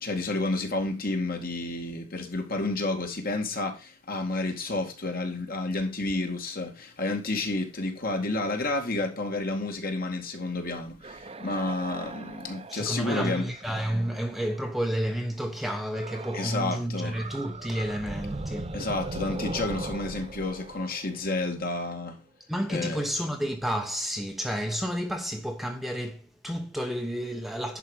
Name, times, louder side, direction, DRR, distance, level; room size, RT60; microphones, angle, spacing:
voice 1, 0.0-13.5 16.3-17.2 18.7-22.2 22.7-23.0, left 2 dB, 45° left, 2.2 m, -30 dB
sound 1, 11.0-14.8 15.9-16.7 16.9-21.8, right 2 dB, 30° right, 0.7 m, -39 dB
voice 2, 12.7-18.8 22.5-27.8, equal, ahead, 0.9 m, -31 dB
11.0 x 5.0 x 5.7 m
head